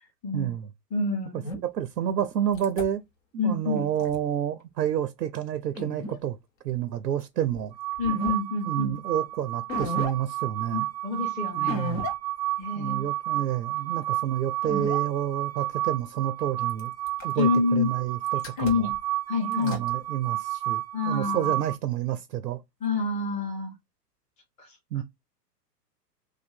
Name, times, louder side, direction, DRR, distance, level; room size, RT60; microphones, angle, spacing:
voice 1, 0.3-0.7 1.6-3.0 3.3-6.4 6.6-7.7 8.6-10.9 11.6-12.1 12.8-16.9 17.2-18.9 19.4-22.6 24.9-25.0, right 10 dB, 80° right, 0.6 m, -29 dB
voice 2, 0.9-1.4 3.4-3.8 8.0-8.9 10.7-11.9 12.6-13.0 13.3-13.4 17.3-17.9 18.6-18.9 19.3-19.8 20.9-21.5 22.8-23.7 24.6-25.0, left 4 dB, 15° left, 1.0 m, -28 dB
sound 1, 1.4-1.6 2.5-2.9 3.7-4.2 5.8-6.2 7.5-7.6 8.0-8.3 8.9-9.0 9.7-10.1 11.7-12.1 12.6-12.7 14.6-15.0 16.7-17.4 18.3-19.0 19.5-19.9, left 2 dB, 50° left, 1.3 m, -34 dB
sound 2, 7.7-21.8, right 15 dB, 25° right, 0.6 m, -31 dB
2.6 x 2.5 x 4.2 m
figure-of-eight pair, 115°, 49 cm